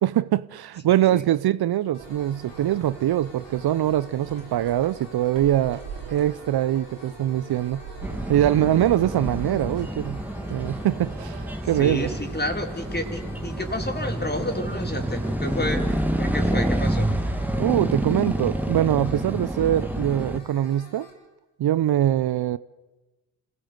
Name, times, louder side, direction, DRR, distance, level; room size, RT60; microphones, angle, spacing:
voice 1, 0.0-5.8 6.1-7.8 8.3-10.2 10.5-12.1 17.6-21.1 21.6-22.6, right 12 dB, 60° right, 0.8 m, -23 dB
sound 1, 1.9-21.1, left 3 dB, 70° left, 7.6 m, -49 dB
sound 2, 2.0-18.1, right 5 dB, 75° right, 3.3 m, -43 dB
sound 3, 8.0-20.4, right 1 dB, 5° right, 2.3 m, -28 dB
voice 2, 11.7-17.1, left 1 dB, 20° left, 4.6 m, -30 dB
26.5 x 16.0 x 8.0 m
hypercardioid pair, 45°, 44 cm